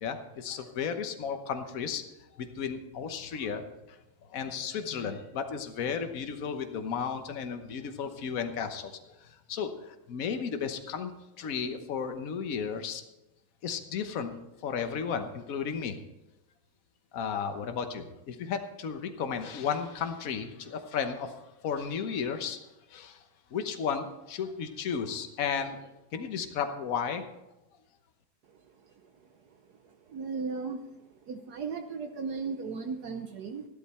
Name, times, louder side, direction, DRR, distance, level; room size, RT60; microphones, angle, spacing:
voice 1, 0.0-2.0 2.4-3.6 3.9-11.1 11.4-13.0 13.6-16.0 17.1-21.3 21.6-22.6 22.9-23.2 23.5-27.2, left 6 dB, 55° left, 7 dB, 1.3 m, -34 dB
voice 2, 29.0-29.4 29.8-30.8 31.3-33.7, right 5 dB, 65° right, 6 dB, 1.3 m, -36 dB
13.5 x 12.0 x 4.3 m, 0.95 s
omnidirectional pair, 2.0 m